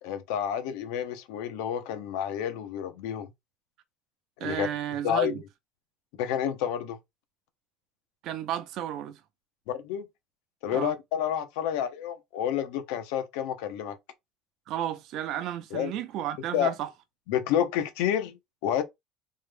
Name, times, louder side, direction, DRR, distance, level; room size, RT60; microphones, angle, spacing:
voice 1, 0.0-3.3 4.4-4.7 5.0-5.4 6.2-7.0 9.7-10.1 10.6-14.0 15.7-15.9 16.5-16.7 17.3-18.8, left 9 dB, 85° left, 0.6 m, -29 dB
voice 2, 4.4-5.4 8.2-9.2 10.7-10.9 14.7-16.9, right 11 dB, 60° right, 0.6 m, -33 dB
3.6 x 2.1 x 3.2 m
cardioid pair, 135°, 0 cm